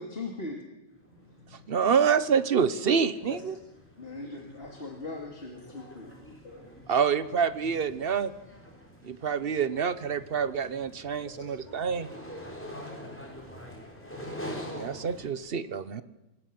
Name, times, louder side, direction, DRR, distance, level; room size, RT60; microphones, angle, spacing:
voice 1, 0.0-0.6 4.0-6.3, left 2 dB, 30° left, 1 dB, 2.6 m, -39 dB
sound 1, 1.0-1.2 1.5-15.3, equal, 5° left, 4.8 m, -45 dB
voice 2, 1.1-1.8 3.3-3.6 5.7-5.9 6.4-6.9 8.8-9.1 11.2-11.8 13.4-15.0, left 4 dB, 85° left, 0 dB, 5.9 m, -53 dB
voice 3, 1.7-3.6 6.9-8.3 9.0-12.1 14.7-16.0, right 6 dB, 40° right, 14 dB, 0.9 m, -27 dB
27.5 x 18.5 x 7.7 m, 0.99 s
omnidirectional pair, 1.9 m